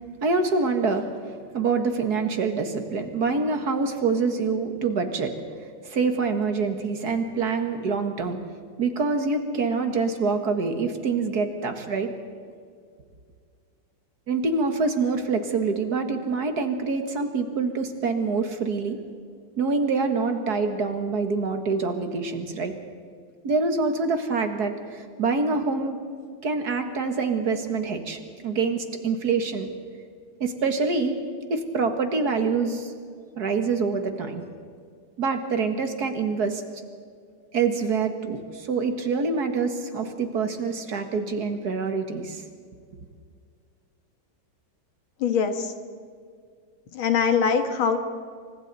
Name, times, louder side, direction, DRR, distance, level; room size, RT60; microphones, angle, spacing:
voice 1, 0.2-1.1 1.5-5.3 5.8-8.4 8.8-12.2 14.3-19.0 19.6-22.8 23.4-26.0 26.4-29.7 30.4-31.2 31.5-32.9 33.4-34.5 35.2-36.6 37.5-42.4, right 4 dB, 55° right, 6 dB, 2.0 m, -25 dB
voice 2, 45.2-45.7 46.9-48.0, left 6 dB, 90° left, 7 dB, 2.3 m, -22 dB
28.0 x 24.5 x 4.1 m, 2.1 s
omnidirectional pair, 2.2 m